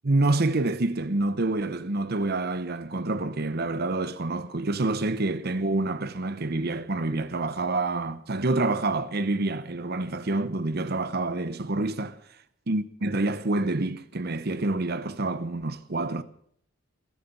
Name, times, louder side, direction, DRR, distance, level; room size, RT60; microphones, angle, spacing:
voice 1, 0.0-12.2 12.7-16.2, right 2 dB, 50° right, 0.9 m, -27 dB
21.0 x 9.4 x 7.0 m
head